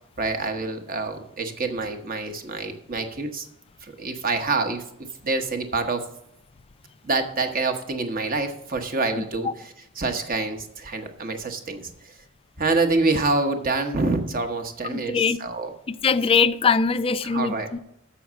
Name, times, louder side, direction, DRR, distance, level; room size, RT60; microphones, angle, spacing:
voice 1, 0.2-3.5 3.8-4.8 5.2-6.0 7.0-9.5 10.0-12.1 12.6-15.7 17.2-17.7, right 3 dB, 45° right, 1.1 m, -26 dB
voice 2, 9.2-9.5 14.9-15.4 15.9-17.8, left 5 dB, 25° left, 0.3 m, -22 dB
7.2 x 6.3 x 7.3 m
head